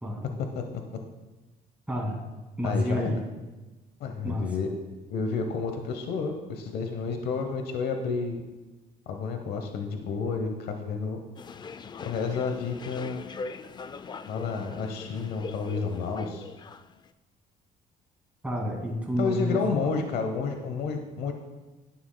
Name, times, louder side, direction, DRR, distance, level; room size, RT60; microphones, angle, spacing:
voice 1, 1.9-2.2 2.6-3.3 4.2-4.6 18.4-19.9, equal, 10° right, -1 dB, 2.2 m, -30 dB
voice 2, 2.6-3.1 4.0-4.7 5.1-8.4 9.1-11.2 12.0-13.2 14.3-16.5 19.2-21.3, left 5 dB, 70° left, 5 dB, 0.9 m, -30 dB
sound 1, 11.4-17.1, left 4 dB, 25° left, 0.4 m, -41 dB
11.5 x 9.5 x 2.2 m, 1.2 s
cardioid pair, 110°, 17 cm